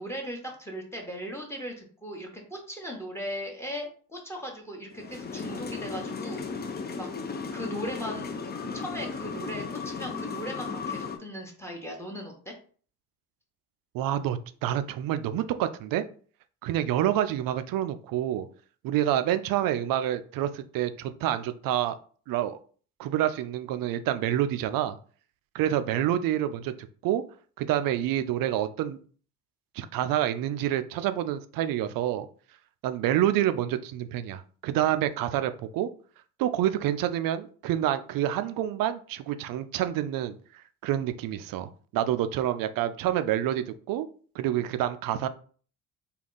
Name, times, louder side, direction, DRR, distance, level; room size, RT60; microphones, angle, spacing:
voice 1, 0.0-6.4 7.0-7.1 7.5-8.3 8.7-12.5, equal, 5° left, 2 dB, 1.1 m, -38 dB
sound 1, 4.9-11.2, left 5 dB, 20° left, 0.6 m, -35 dB
voice 2, 13.9-16.0 16.6-18.5 18.8-22.0 22.3-22.6 23.0-25.0 25.5-26.7 27.0-27.2 27.6-29.0 29.8-32.3 32.8-35.9 36.4-44.1 44.3-45.3, right 12 dB, 50° right, 11 dB, 0.5 m, -28 dB
3.4 x 2.3 x 3.9 m, 0.43 s
hypercardioid pair, 55°, 44 cm